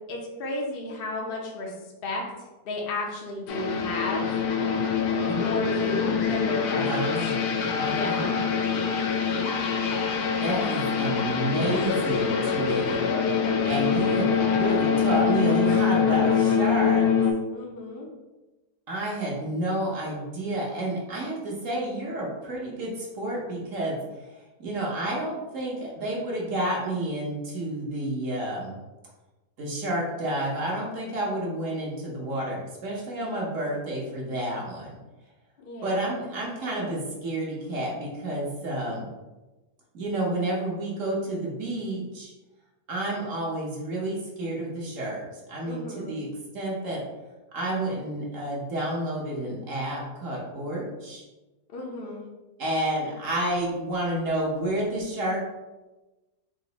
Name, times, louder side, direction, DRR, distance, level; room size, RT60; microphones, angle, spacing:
voice 1, 0.1-1.7 2.0-2.2 2.6-4.3 5.4-7.0 7.9-8.3 17.5-18.1 35.6-36.2 45.6-46.2 51.7-52.3, left 2 dB, 50° left, -1 dB, 0.7 m, -33 dB
sound 1, 3.5-17.3, left 6 dB, 75° left, 1.1 m, -24 dB
voice 2, 6.7-7.5 7.8-8.6 10.4-13.0 13.6-17.1 18.9-24.3 24.6-28.8 29.6-34.9 35.8-39.0 39.9-42.3 42.9-46.3 46.5-47.0 47.5-51.2 52.6-55.4, right 1 dB, 55° right, -3 dB, 1.2 m, -30 dB
3.9 x 2.5 x 3.9 m, 1.1 s
omnidirectional pair, 1.7 m